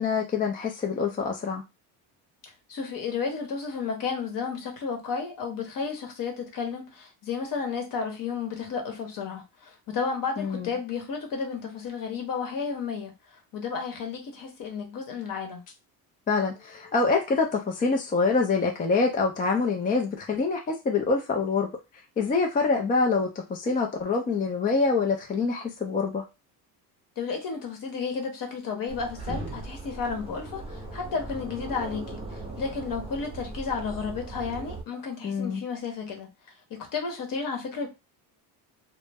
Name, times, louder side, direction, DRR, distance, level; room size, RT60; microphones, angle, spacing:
voice 1, 0.0-1.6 10.4-10.7 16.3-21.7 22.2-26.2 35.2-35.6, left 4 dB, 20° left, 0.3 m, -25 dB
voice 2, 2.4-13.1 13.5-15.6 27.2-36.3 36.7-37.9, left 5 dB, 50° left, 0.9 m, -32 dB
sound 1, 28.9-34.8, right 2 dB, 15° right, 0.6 m, -38 dB
2.1 x 2.1 x 3.3 m
cardioid pair, 120°, 41 cm